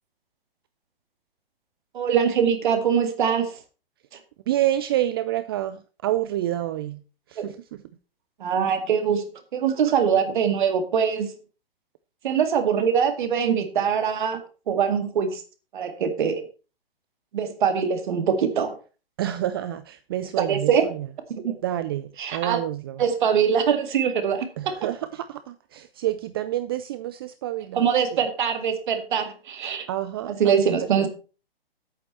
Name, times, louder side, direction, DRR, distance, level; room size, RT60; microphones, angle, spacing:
voice 1, 1.9-3.5 7.4-7.5 8.4-9.2 9.5-11.3 12.2-14.4 14.7-15.4 15.7-16.4 17.3-18.7 20.4-20.9 21.4-21.6 22.2-22.6 23.0-24.7 27.7-29.9 30.3-31.1, right 7 dB, 55° right, 2.1 m, -23 dB
voice 2, 4.5-7.0 7.3-7.6 19.2-21.1 21.6-23.0 24.6-27.9 29.9-30.6, right 13 dB, 25° right, 0.4 m, -28 dB
10.0 x 8.6 x 4.3 m
figure-of-eight pair, 125°, 30 cm